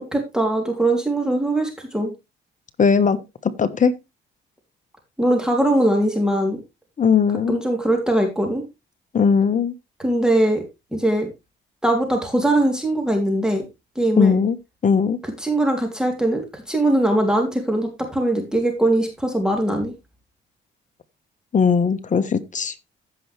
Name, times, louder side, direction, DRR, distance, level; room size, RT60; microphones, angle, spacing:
voice 1, 0.1-2.1 5.2-6.6 7.5-8.6 10.0-10.6 10.9-11.3 11.8-13.6 13.9-14.4 15.2-19.9, right 1 dB, 5° right, 3.1 m, -21 dB
voice 2, 2.8-3.2 3.4-3.9 7.0-7.6 9.1-9.7 14.2-14.5 14.8-15.2 21.5-22.7, left 6 dB, 40° left, 1.2 m, -18 dB
15.0 x 5.7 x 3.3 m
cardioid pair, 90°, 20 cm